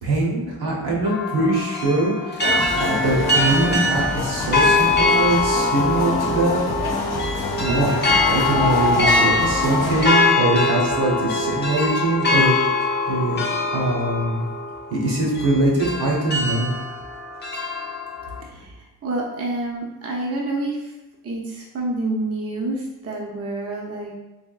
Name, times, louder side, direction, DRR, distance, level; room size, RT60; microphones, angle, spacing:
voice 1, 0.0-6.6 7.6-13.4 13.7-14.4 14.9-16.7, right 2 dB, 80° right, -4 dB, 1.1 m, -22 dB
sound 1, 1.0-18.4, left 2 dB, 30° left, 0.4 m, -23 dB
sound 2, 2.4-10.1, left 3 dB, 80° left, 0.7 m, -25 dB
voice 2, 18.2-20.9 21.2-24.1, right 2 dB, 40° right, -3 dB, 0.5 m, -28 dB
3.6 x 3.4 x 2.3 m, 1.0 s
wide cardioid pair, 135°, 38 cm